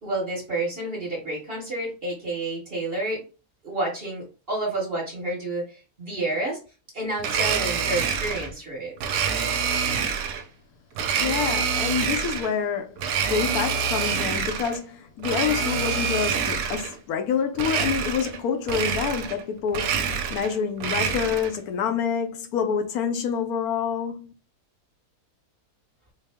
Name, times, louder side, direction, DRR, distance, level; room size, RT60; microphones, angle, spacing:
voice 1, 0.0-3.2 3.6-6.6 6.9-8.9, right 2 dB, 40° right, 1.3 m, -29 dB
Domestic sounds home sounds, 7.2-8.5 9.0-10.4 10.9-12.5 13.0-14.8 15.2-17.0 17.5-18.4 18.7-19.4 19.7-21.6, right 6 dB, 75° right, 1.0 m, -26 dB
voice 2, 11.2-20.0 20.3-24.3, left 7 dB, 70° left, 1.0 m, -27 dB
4.3 x 2.0 x 3.4 m
omnidirectional pair, 1.7 m